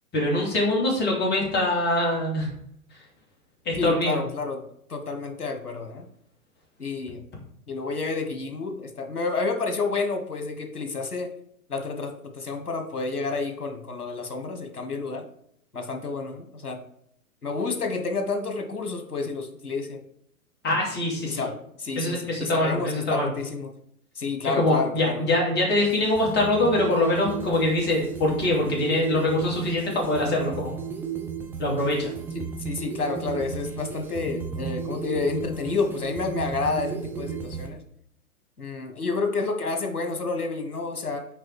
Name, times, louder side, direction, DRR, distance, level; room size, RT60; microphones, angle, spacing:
voice 1, 0.1-2.5 3.6-4.2 20.6-21.4 22.0-23.3 24.5-30.7 31.6-32.1, left 1 dB, 25° left, -2 dB, 2.7 m, -24 dB
voice 2, 3.8-4.6 4.9-6.1 6.8-7.2 7.7-11.3 11.7-15.3 15.7-16.8 17.4-20.0 21.2-21.5 21.8-23.7 24.1-25.3 32.3-37.8 38.6-41.3, left 4 dB, 85° left, 6 dB, 1.4 m, -29 dB
sound 1, 25.7-37.7, right 6 dB, 5° right, 0.8 m, -35 dB
6.0 x 4.9 x 4.7 m, 0.70 s
figure-of-eight pair, 110°, 44 cm